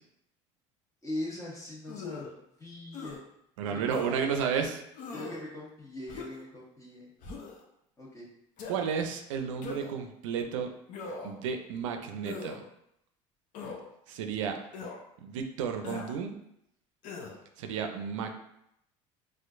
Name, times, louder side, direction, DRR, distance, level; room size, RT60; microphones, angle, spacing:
voice 1, 1.0-3.2 3.7-4.3 5.1-7.1 8.0-8.3, left 1 dB, 20° left, -5 dB, 1.5 m, -41 dB
sound 1, 1.9-2.3 2.9-3.2 3.9-4.2 5.0-5.4 6.1-6.5 7.2-7.6 8.6-8.8 9.6-10.0 10.9-11.4 12.2-12.6 13.5-13.8 14.7-15.0 15.8-16.2 17.0-17.4, left 4 dB, 55° left, 0.7 m, -41 dB
voice 2, 3.6-4.8 8.7-10.7 11.2-12.6 14.1-14.6 15.2-16.4 17.6-18.3, right 7 dB, 85° right, 5 dB, 0.4 m, -32 dB
4.3 x 2.5 x 2.5 m, 0.78 s
supercardioid pair, 85°, 16 cm